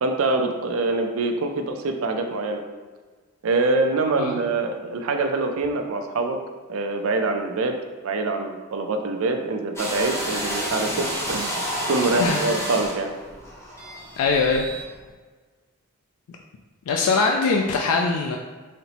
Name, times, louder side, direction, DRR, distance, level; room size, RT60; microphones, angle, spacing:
voice 1, 0.0-2.6 3.4-6.4 6.7-7.7 8.0-11.6 11.9-13.1, right 3 dB, 65° right, 5 dB, 0.4 m, -24 dB
sound 1, 9.8-14.9, equal, 10° left, 0.8 m, -30 dB
voice 2, 14.2-14.7 16.9-18.4, left 4 dB, 80° left, 1 dB, 0.3 m, -21 dB
4.2 x 2.0 x 4.0 m, 1.4 s
head